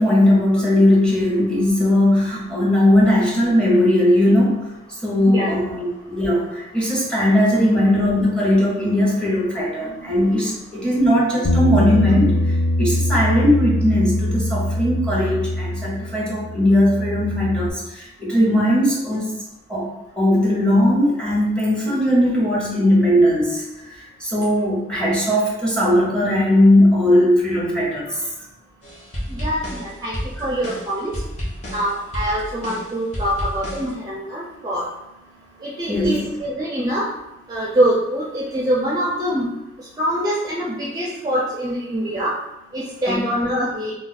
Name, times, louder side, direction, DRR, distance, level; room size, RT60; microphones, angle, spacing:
voice 1, 0.0-4.7 5.0-19.3 19.7-19.9 20.2-28.2 30.4-30.5 35.9-36.2 43.1-43.2, left 1 dB, 5° left, -5 dB, 0.8 m, -18 dB
Bass guitar, 11.4-17.7, left 1 dB, 75° left, 0.4 m, -22 dB
sound 1, 28.8-33.9, equal, 40° left, 0.8 m, -31 dB
voice 2, 29.3-31.1 31.7-34.9 35.6-37.1 37.5-39.5 40.0-42.3 42.7-43.9, right 1 dB, 20° right, -5 dB, 0.4 m, -24 dB
2.4 x 2.3 x 4.0 m, 0.93 s
head